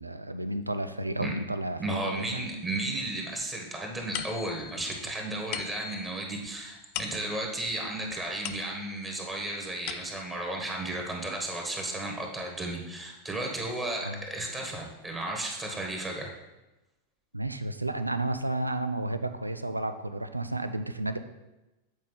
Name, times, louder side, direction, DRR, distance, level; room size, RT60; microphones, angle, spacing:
voice 1, 0.0-2.5 14.0-14.2 17.3-21.2, right 2 dB, 85° right, 10 dB, 0.4 m, -32 dB
voice 2, 1.8-16.3, right 2 dB, 10° right, 0 dB, 1.4 m, -34 dB
sound 1, 4.1-9.1 9.6-10.5, left 10 dB, 45° left, 0.4 m, -41 dB
8.1 x 4.6 x 3.8 m, 1.0 s
figure-of-eight pair, 90°, 0 cm